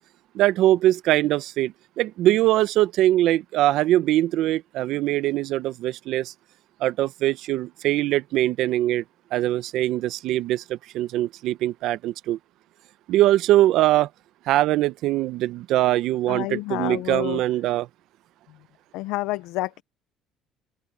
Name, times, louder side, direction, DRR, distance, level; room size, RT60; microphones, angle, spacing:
voice 1, 0.3-6.3 6.8-9.0 9.3-12.4 13.1-14.1 14.5-17.9, right 14 dB, 65° right, 0.8 m, -22 dB
voice 2, 16.3-17.4 18.9-19.8, left 19 dB, 80° left, 0.7 m, -29 dB
open air
cardioid pair, 125°, 0 cm